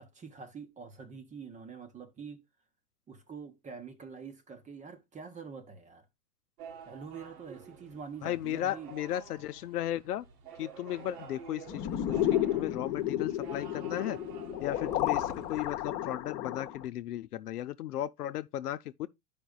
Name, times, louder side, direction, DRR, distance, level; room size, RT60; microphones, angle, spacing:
voice 1, 0.0-2.4 3.1-6.0 6.9-8.9, right 5 dB, 15° right, 0.9 m, -45 dB
sound 1, 6.6-15.6, right 6 dB, 65° right, 1.6 m, -49 dB
voice 2, 8.2-10.2 10.6-14.2 14.6-19.1, left 12 dB, 75° left, 0.7 m, -35 dB
sound 2, 11.7-16.9, left 12 dB, 35° left, 1.2 m, -32 dB
12.5 x 5.2 x 2.3 m
hypercardioid pair, 115°, 46 cm